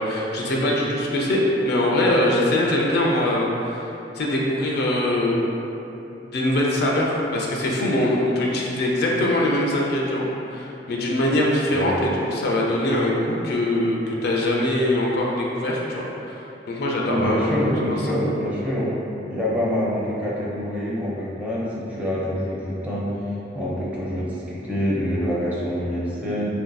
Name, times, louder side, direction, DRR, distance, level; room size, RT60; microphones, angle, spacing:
voice 1, 0.0-3.9 4.1-5.5 5.9-16.1 16.7-17.5 17.9-18.0, left 1 dB, 60° left, -3 dB, 0.4 m, -22 dB
voice 2, 17.1-18.9 19.3-23.1 23.5-26.5, equal, 10° right, -8 dB, 0.5 m, -26 dB
3.7 x 2.5 x 2.3 m, 3.0 s
head